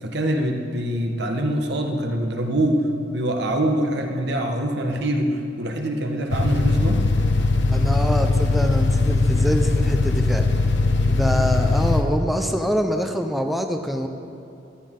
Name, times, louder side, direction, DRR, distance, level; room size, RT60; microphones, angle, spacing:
voice 1, 0.0-7.0, right 1 dB, 60° right, 3 dB, 1.3 m, -24 dB
sound 1, 6.3-12.0, left 3 dB, 65° left, 0.9 m, -20 dB
voice 2, 7.7-10.5 11.1-14.1, equal, ahead, 4 dB, 0.6 m, -25 dB
14.5 x 12.0 x 3.8 m, 2.7 s
head